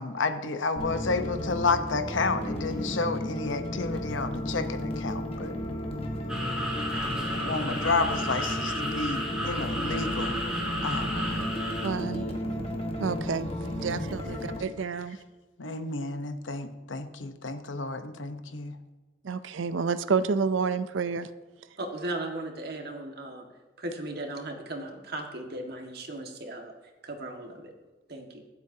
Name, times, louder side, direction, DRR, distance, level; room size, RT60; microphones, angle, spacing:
voice 1, 0.0-5.5 6.9-10.4 10.8-11.4 12.4-12.6 13.0-13.1 15.6-18.8, left 3 dB, 85° left, 8 dB, 1.0 m, -31 dB
sound 1, 0.8-14.6, equal, 30° left, 1.4 m, -33 dB
sound 2, 6.3-11.9, equal, 5° right, 2.7 m, -33 dB
voice 2, 11.1-11.5 11.8-12.3 13.0-13.5 13.8-15.2 19.2-21.3, right 5 dB, 85° right, 13 dB, 0.5 m, -29 dB
voice 3, 21.8-23.4 23.8-26.7 27.0-27.7 28.1-28.4, right 1 dB, 55° right, 2 dB, 1.8 m, -37 dB
24.0 x 8.1 x 2.8 m, 1.2 s
head